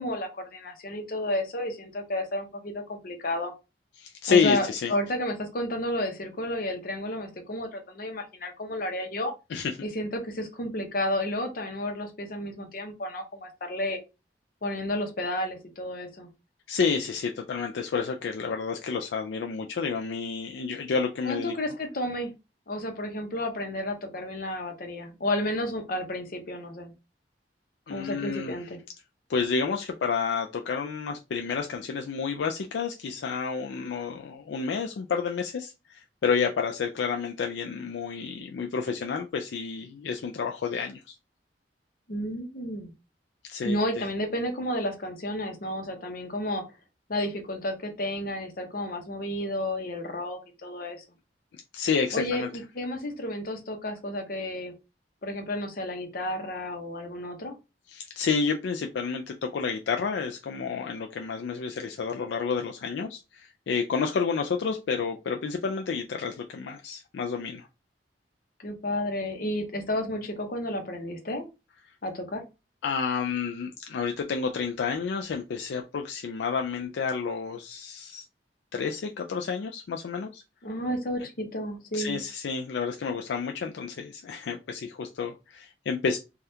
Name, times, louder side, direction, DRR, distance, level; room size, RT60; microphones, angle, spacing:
voice 1, 0.0-3.5 4.3-9.3 9.8-14.0 14.6-16.3 21.2-22.3 22.7-26.9 27.9-28.8 42.1-42.9 43.6-46.6 47.1-51.0 52.1-54.7 55.2-57.6 68.6-71.4 72.0-72.4 80.6-82.2, left 1 dB, 55° left, 5 dB, 0.8 m, -31 dB
voice 2, 4.0-4.9 9.5-9.7 16.7-21.5 27.9-28.6 29.3-41.0 43.5-44.0 51.7-52.5 57.9-67.7 72.8-78.2 78.7-80.4 81.9-86.2, left 5 dB, 80° left, 3 dB, 0.4 m, -30 dB
3.4 x 2.3 x 2.7 m, 0.26 s
head